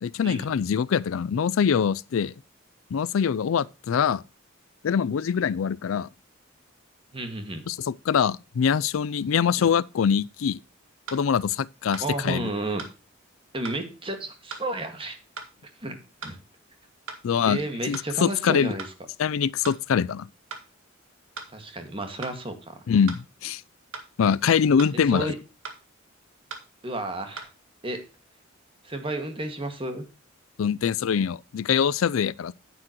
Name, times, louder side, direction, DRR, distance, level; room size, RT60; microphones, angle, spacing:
voice 1, 0.0-2.3 2.9-4.2 4.8-6.1 7.7-10.6 11.1-12.5 17.2-17.6 17.9-18.8 19.2-20.3 22.9-23.6 24.2-25.3 30.6-32.5, left 7 dB, 80° left, 0.4 m, -24 dB
voice 2, 7.1-7.7 9.6-9.7 12.0-12.8 13.5-15.2 15.8-16.4 17.5-18.8 21.5-22.8 25.1-25.4 26.8-27.5 27.8-28.1 28.8-30.1, right 1 dB, 25° right, 1.8 m, -32 dB
sound 1, 11.1-11.2 11.9-12.1 12.8-12.9 13.6-13.8 14.5-14.7 15.4-15.5 16.2-16.4 17.1-17.2 17.9-18.1 18.8-18.9 19.6-19.8 20.5-20.7 21.4-21.5 22.2-22.4 23.1-23.2 23.9-24.1 24.8-25.0 25.6-25.8 26.5-26.7 27.4-27.5, right 4 dB, 80° right, 1.9 m, -38 dB
9.7 x 9.0 x 3.0 m
head